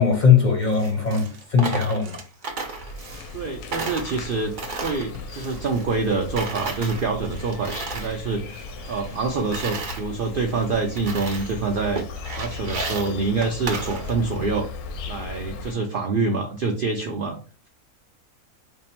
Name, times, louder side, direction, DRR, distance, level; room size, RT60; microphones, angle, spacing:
voice 1, 0.0-2.2, left 6 dB, 45° left, 0.6 m, -19 dB
Coin (dropping), 0.6-3.4 3.7-6.1 6.4-8.2 8.5-10.0 10.5-10.6 11.0-11.6 11.9-14.4, right 3 dB, 45° right, 0.6 m, -34 dB
Insect, 2.5-15.7, left 4 dB, 80° left, 1.1 m, -37 dB
voice 2, 3.3-4.5 4.8-8.6 8.9-12.0 12.3-14.7 15.1-17.4, right 4 dB, 90° right, 0.4 m, -26 dB
3.6 x 2.0 x 4.2 m
omnidirectional pair, 1.6 m